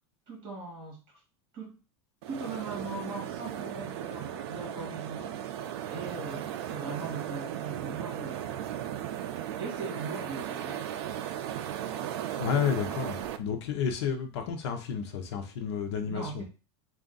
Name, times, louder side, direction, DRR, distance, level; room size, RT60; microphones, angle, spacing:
voice 1, 0.3-1.2 1.5-1.8 2.3-8.7 9.6-10.9 16.1-16.4, right 3 dB, 35° right, 1.8 m, -40 dB
sound 1, 2.2-13.4, right 10 dB, 60° right, 0.4 m, -36 dB
voice 2, 12.4-16.4, left 7 dB, 70° left, 0.8 m, -31 dB
3.4 x 2.5 x 3.9 m
supercardioid pair, 165°, 15 cm